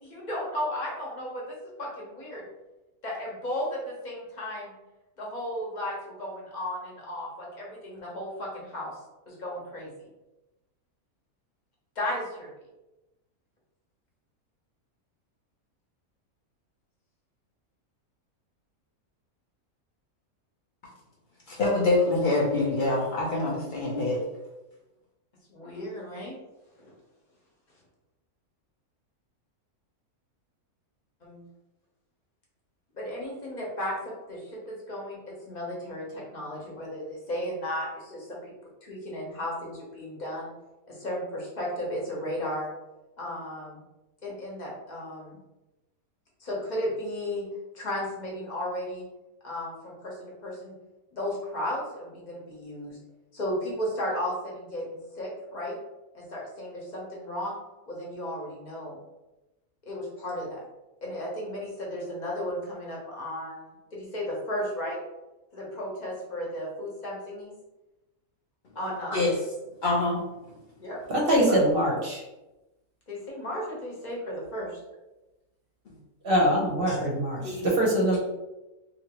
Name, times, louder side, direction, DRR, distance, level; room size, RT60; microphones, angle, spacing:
voice 1, 0.0-2.4 3.0-4.7 5.2-8.9 9.3-10.1 12.0-12.5 25.5-26.3 31.2-31.4 32.9-38.5 38.8-40.5 40.9-42.7 43.2-43.8 44.2-45.4 46.4-47.4 47.7-49.0 49.4-50.7 51.1-53.0 53.3-55.8 56.1-57.6 57.9-59.0 59.8-60.6 61.0-65.0 65.5-67.5 68.7-69.2 70.8-71.0 71.5-71.6 73.1-74.8, left 1 dB, 40° left, -4 dB, 0.8 m, -34 dB
voice 2, 21.5-24.2 69.1-69.3 69.8-70.2 76.9-77.0 77.4-77.7 78.1-78.2, left 2 dB, 80° left, -4 dB, 0.4 m, -25 dB
voice 3, 71.1-72.2 76.2-78.2, equal, 50° right, -3 dB, 0.8 m, -23 dB
2.8 x 2.5 x 2.9 m, 1.0 s
omnidirectional pair, 1.5 m